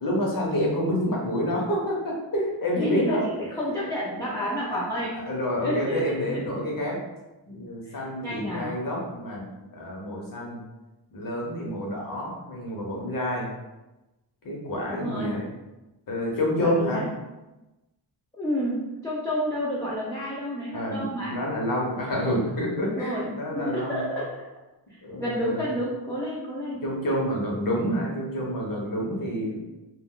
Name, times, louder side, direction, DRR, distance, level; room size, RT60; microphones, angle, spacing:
voice 1, 0.0-3.3 4.4-7.0 7.5-9.4 9.7-10.6 11.1-13.5 14.4-15.5 16.1-17.0 20.7-24.0 25.0-25.6 26.8-29.6, equal, 50° left, -2 dB, 0.8 m, -28 dB
voice 2, 2.8-5.1 5.6-6.4 7.8-8.7 14.9-15.3 16.6-17.1 18.4-21.3 22.8-23.3 23.5-24.4 24.9-26.8 29.4-29.6, equal, 5° left, -7 dB, 0.4 m, -30 dB
2.4 x 2.2 x 3.6 m, 1.0 s
wide cardioid pair, 140°, 44 cm